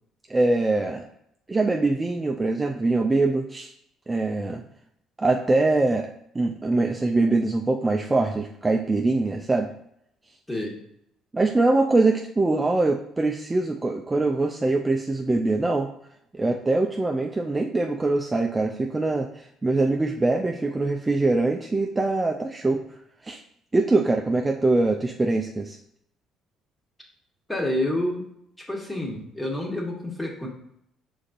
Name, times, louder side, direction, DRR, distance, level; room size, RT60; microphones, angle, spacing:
voice 1, 0.3-1.0 1.5-3.7 4.1-4.6 5.2-9.7 11.3-15.9 16.3-22.8 23.2-23.4 23.7-25.8, right 2 dB, 20° right, 1 dB, 0.4 m, -23 dB
voice 2, 10.5-10.8 27.5-28.3 28.6-30.5, left 1 dB, 10° left, 0 dB, 1.4 m, -28 dB
5.1 x 4.0 x 2.5 m, 0.74 s
supercardioid pair, 70°, 0 cm